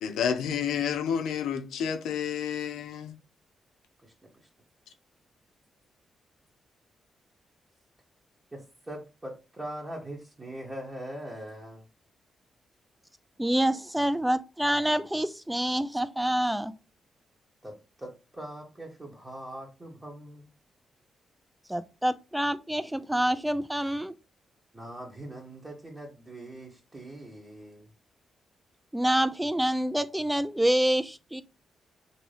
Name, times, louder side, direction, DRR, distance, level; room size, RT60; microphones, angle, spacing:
voice 1, 0.0-3.1, left 8 dB, 85° left, 0.5 m, -30 dB
voice 2, 8.5-11.8 17.6-17.7 18.0-20.5 24.7-27.9, right 1 dB, 25° right, 1.0 m, -42 dB
voice 3, 13.4-16.7 21.7-24.1 28.9-31.4, right 1 dB, 5° right, 0.4 m, -27 dB
2.9 x 2.6 x 3.2 m
supercardioid pair, 55°, 0 cm